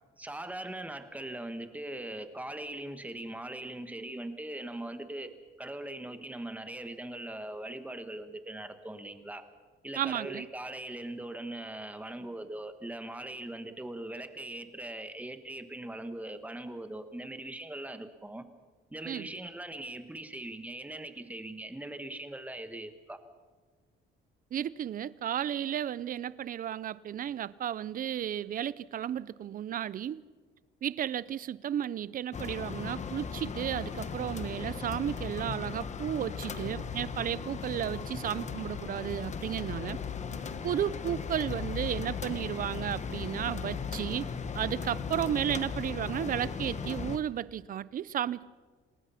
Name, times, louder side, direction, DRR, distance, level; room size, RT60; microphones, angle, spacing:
voice 1, 0.2-9.4 9.8-18.4 18.9-23.2, right 1 dB, 5° right, 1.4 m, -40 dB
voice 2, 10.0-10.5 19.1-19.3 24.5-30.2 30.8-40.0 40.6-44.3 44.5-48.5, right 10 dB, 40° right, 0.5 m, -33 dB
sound 1, 32.3-47.2, left 6 dB, 35° left, 1.2 m, -37 dB
27.5 x 19.5 x 5.8 m
cardioid pair, 155°, 21 cm